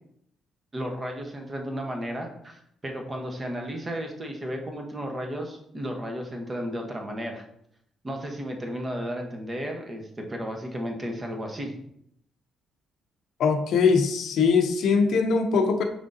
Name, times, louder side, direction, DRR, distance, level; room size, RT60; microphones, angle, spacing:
voice 1, 0.7-7.4 8.0-11.7, equal, 25° right, 2 dB, 0.9 m, -33 dB
voice 2, 13.4-15.8, left 5 dB, 75° left, 6 dB, 0.6 m, -21 dB
4.9 x 3.5 x 2.6 m, 0.73 s
cardioid pair, 90°, 0 cm